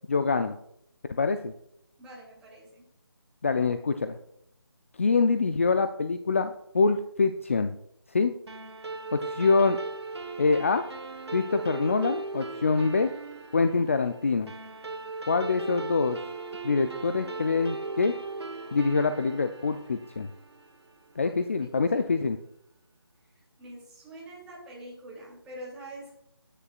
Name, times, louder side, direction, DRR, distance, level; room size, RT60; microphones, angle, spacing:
voice 1, 0.1-0.5 1.1-1.5 3.4-4.2 5.0-7.7 8.1-8.3 9.1-9.8 10.4-10.8 11.3-13.1 13.5-14.5 15.3-16.2 16.6-18.1 18.7-20.3 21.2-22.4, left 4 dB, 30° left, 8 dB, 0.5 m, -25 dB
voice 2, 2.0-2.8 15.6-16.3 21.2-21.4 21.9-22.3 23.6-26.1, right 1 dB, 5° right, -5 dB, 2.8 m, -45 dB
sound 1, 8.5-21.2, right 3 dB, 90° right, 1.3 m, -38 dB
20.0 x 9.9 x 2.4 m, 0.74 s
figure-of-eight pair, 170°, 13 cm